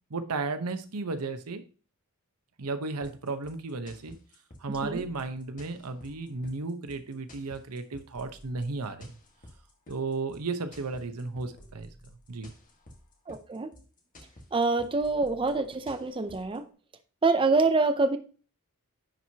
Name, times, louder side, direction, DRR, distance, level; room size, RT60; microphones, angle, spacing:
voice 1, 0.1-1.6 2.6-4.2 4.6-9.1 9.9-11.9 12.3-12.5, right 3 dB, 90° right, 9 dB, 0.9 m, -34 dB
sound 1, 3.0-16.6, left 1 dB, 35° left, 1.5 m, -52 dB
voice 2, 4.7-5.0 13.3-13.7 14.5-16.6 17.2-18.2, right 3 dB, 25° right, 9 dB, 0.5 m, -26 dB
10.5 x 4.6 x 2.8 m, 0.38 s
head